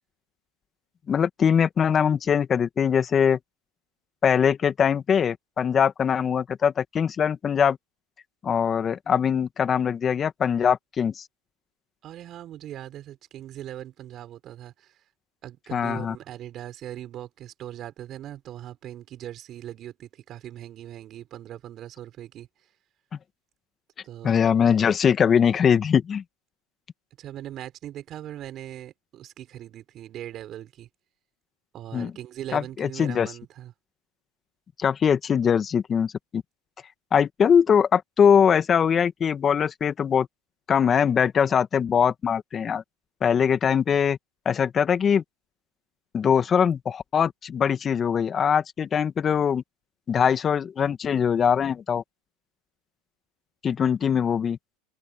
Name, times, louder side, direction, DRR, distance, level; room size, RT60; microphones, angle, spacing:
voice 1, 1.1-3.4 4.2-7.8 8.4-11.2 15.7-16.2 24.2-26.2 31.9-32.1 32.5-33.3 34.8-36.4 37.1-40.3 40.7-42.8 43.2-44.2 44.5-45.2 46.1-49.6 50.1-52.0 53.6-54.6, left 7 dB, 30° left, 2.1 m, -22 dB
voice 2, 12.0-14.9 15.4-22.5 24.0-24.5 27.2-30.9 31.7-33.7, right 12 dB, 45° right, 5.6 m, -40 dB
hypercardioid pair, 95°, 0 cm